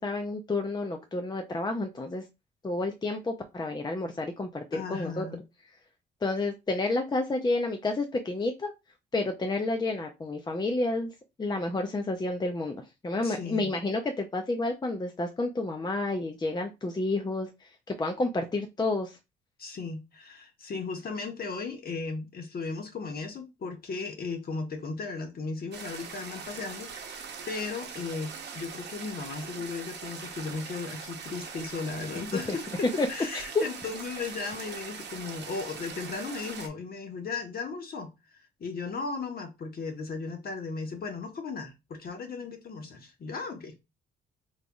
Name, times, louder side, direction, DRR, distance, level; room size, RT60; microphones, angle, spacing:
voice 1, 0.0-2.2 2.6-5.3 6.2-8.7 9.1-11.1 11.4-19.2 33.0-33.1 33.3-33.6, left 2 dB, 20° left, 0.6 m, -30 dB
voice 2, 4.7-5.4 13.2-13.7 19.6-38.1 38.6-43.8, left 4 dB, 50° left, 1.2 m, -36 dB
sound 1, 25.7-36.7, right 6 dB, 60° right, 0.9 m, -41 dB
3.9 x 3.3 x 2.3 m
cardioid pair, 90°, 20 cm